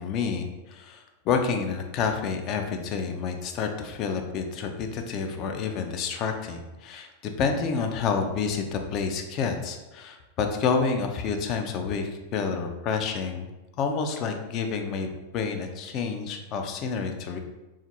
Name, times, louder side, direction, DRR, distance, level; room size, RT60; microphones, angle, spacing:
voice 1, 0.0-13.5 13.8-15.1 15.3-17.4, left 5 dB, 35° left, 4 dB, 0.4 m, -29 dB
3.7 x 2.4 x 2.8 m, 1.1 s
figure-of-eight pair, 90°, 0 cm